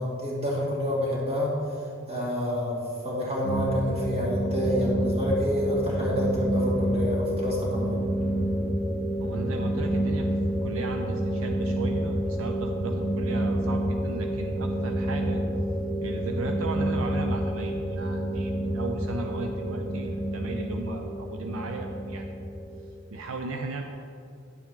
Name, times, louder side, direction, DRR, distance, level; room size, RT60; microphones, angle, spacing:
voice 1, 0.0-1.6 2.1-8.0, left 1 dB, 30° right, -5 dB, 2.1 m, -28 dB
sound 1, 3.4-22.9, right 1 dB, ahead, 1.1 m, -28 dB
voice 2, 9.2-10.3 10.6-15.4 16.0-22.3 23.1-23.8, right 3 dB, 75° right, 4 dB, 0.5 m, -36 dB
10.0 x 7.2 x 3.8 m, 2.4 s
head